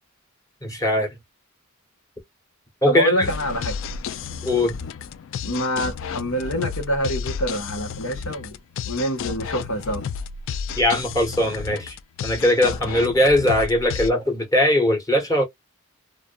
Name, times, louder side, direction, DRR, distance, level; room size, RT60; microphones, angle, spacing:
voice 1, 0.6-1.1 2.8-3.3 4.4-4.8 10.8-12.0 12.2-15.4, left 1 dB, 15° left, 0.9 m, -20 dB
voice 2, 2.8-3.8 5.4-8.6 8.8-10.0, equal, 85° left, 1.2 m, -25 dB
sound 1, 3.2-14.1, left 6 dB, 65° left, 0.3 m, -32 dB
2.6 x 2.3 x 2.2 m
head